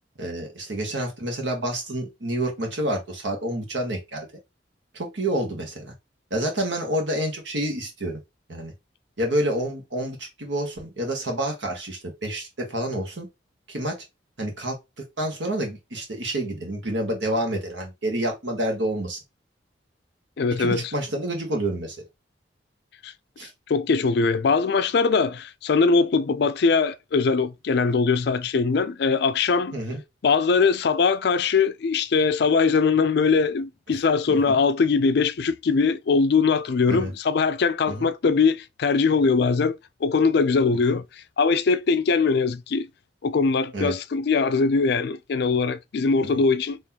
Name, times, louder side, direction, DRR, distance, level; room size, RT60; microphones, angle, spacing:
voice 1, 0.2-4.3 4.9-5.9 6.3-8.2 8.5-8.7 9.2-13.3 13.7-14.0 14.4-14.8 15.2-19.2 20.6-22.0 23.4-23.5 29.7-30.0 34.3-34.6 36.9-37.1 37.9-38.1 43.7-43.9 46.2-46.4, right 1 dB, 80° right, 1.4 m, -28 dB
voice 2, 20.4-20.9 23.0-23.1 23.7-29.8 30.2-41.0 41.4-42.9 43.2-46.8, left 4 dB, 60° left, 0.4 m, -21 dB
3.9 x 3.0 x 2.8 m
head